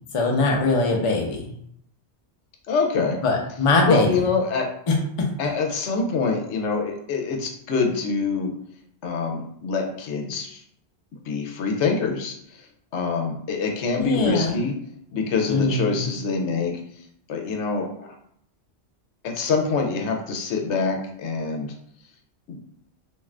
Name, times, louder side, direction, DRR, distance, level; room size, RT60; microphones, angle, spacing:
voice 1, 0.1-1.4 3.2-4.1 4.9-5.0 14.0-14.6 15.5-16.1, left 3 dB, 40° left, 0 dB, 0.5 m, -21 dB
voice 2, 2.7-3.2 3.8-4.7 5.4-8.5 9.0-10.6 11.3-12.4 12.9-14.7 15.1-16.8 17.3-18.1 19.2-21.7 22.5-22.6, left 4 dB, 90° left, 2 dB, 0.9 m, -25 dB
2.4 x 2.4 x 3.2 m, 0.68 s
omnidirectional pair, 1.1 m